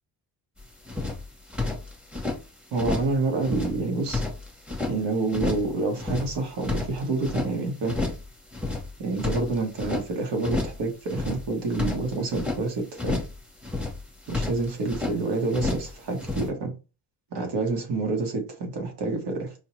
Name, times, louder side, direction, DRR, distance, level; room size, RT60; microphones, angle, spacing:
sound 1, 0.6-0.7 0.9-2.4 2.7-3.2 3.4-4.9 5.3-5.7 6.0-7.5 7.9-8.3 8.5-10.1 10.4-10.8 11.1-12.6 13.0-13.4 13.6-15.2 15.5-16.5, left 3 dB, 5° right, 0.8 m, -30 dB
voice 1, 2.7-4.2 4.9-7.9 9.0-13.2 14.3-16.7 17.3-19.5, right 3 dB, 90° right, 1.3 m, -28 dB
4.4 x 2.2 x 3.0 m
wide cardioid pair, 135°, 40 cm